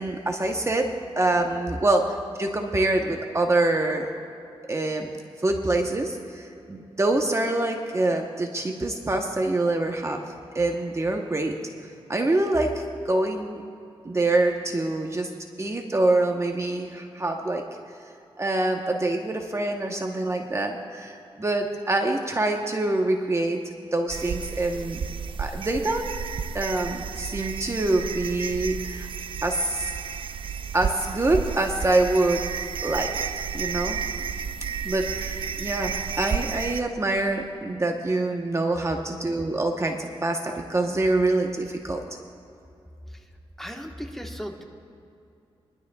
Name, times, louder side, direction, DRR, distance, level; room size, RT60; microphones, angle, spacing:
voice 1, 0.0-4.1 4.7-5.1 5.4-11.6 12.1-13.6 14.0-15.3 15.6-17.6 18.4-23.6 23.9-25.1 25.4-26.2 26.5-29.1 29.4-29.9 30.7-32.4 32.8-34.0 34.8-42.0, right 2 dB, 30° right, 3 dB, 1.0 m, -25 dB
sound 1, 24.1-36.8, right 6 dB, 60° right, 0.5 m, -32 dB
voice 2, 43.6-44.6, equal, 5° left, 2 dB, 1.3 m, -36 dB
22.5 x 12.0 x 2.3 m, 2.6 s
cardioid pair, 75°, 10 cm